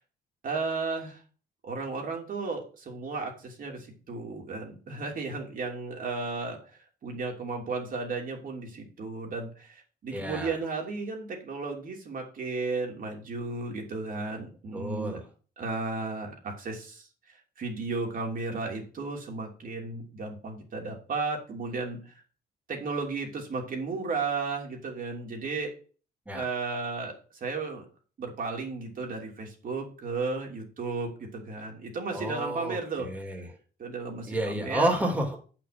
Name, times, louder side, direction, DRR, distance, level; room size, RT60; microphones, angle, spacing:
voice 1, 0.4-1.2 1.6-15.2 15.6-22.2 22.7-25.7 26.3-27.8 28.2-33.1 33.8-35.0, right 4 dB, 55° right, 1 dB, 3.1 m, -34 dB
voice 2, 10.1-10.6 14.7-15.2 26.3-26.4 32.1-33.5 34.3-35.4, right 1 dB, 10° right, 2 dB, 2.7 m, -30 dB
9.0 x 6.1 x 5.9 m, 0.38 s
cardioid pair, 110°, 18 cm